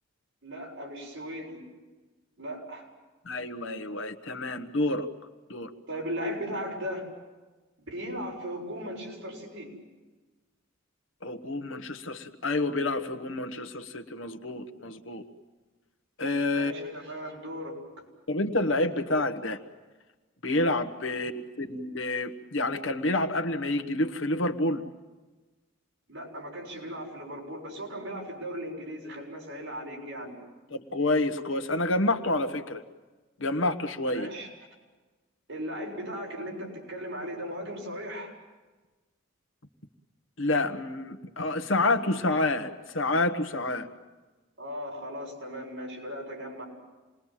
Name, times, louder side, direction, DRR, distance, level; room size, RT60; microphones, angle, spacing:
voice 1, 0.4-1.6 2.4-2.9 5.9-7.1 7.8-9.7 16.5-18.0 26.1-30.4 34.1-34.5 35.5-38.3 44.6-46.6, equal, 65° right, -1 dB, 6.8 m, -37 dB
voice 2, 3.2-5.1 5.5-5.7 11.2-15.2 16.2-16.7 18.3-19.6 20.4-24.8 30.7-32.8 33.4-34.3 40.4-43.9, left 2 dB, 70° left, 7 dB, 1.3 m, -28 dB
27.5 x 21.0 x 7.5 m, 1.2 s
head